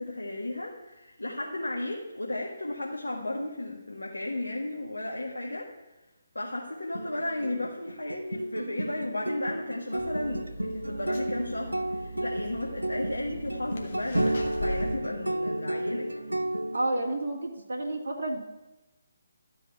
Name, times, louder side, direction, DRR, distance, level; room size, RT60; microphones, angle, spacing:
voice 1, 0.0-5.7 6.4-16.1, left 1 dB, 80° left, -1 dB, 1.7 m, -34 dB
sound 1, 6.9-16.8, right 1 dB, 90° right, 0.8 m, -32 dB
sound 2, 10.0-15.0, equal, 50° left, 1.7 m, -40 dB
voice 2, 16.7-18.4, right 1 dB, 60° right, -1 dB, 2.2 m, -30 dB
12.5 x 5.5 x 9.0 m, 1.1 s
figure-of-eight pair, 145°, 0 cm